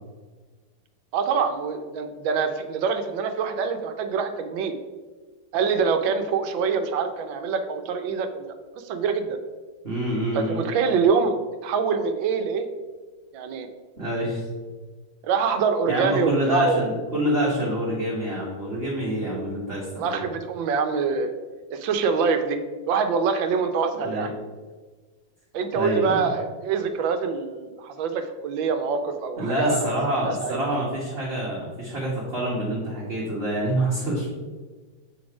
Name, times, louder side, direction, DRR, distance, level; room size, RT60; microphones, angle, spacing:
voice 1, 1.1-4.7 5.5-8.5 8.8-9.4 10.3-11.3 11.6-12.7 13.3-13.7 15.2-16.9 19.9-21.3 21.7-22.6 22.9-24.3 25.5-29.8 30.2-30.6, right 5 dB, 70° right, 7 dB, 1.4 m, -25 dB
voice 2, 9.8-10.6 14.0-14.4 15.9-20.3 24.0-24.3 25.7-26.3 29.4-34.3, right 1 dB, 35° right, -6 dB, 1.4 m, -26 dB
7.7 x 4.1 x 4.8 m, 1.4 s
omnidirectional pair, 2.3 m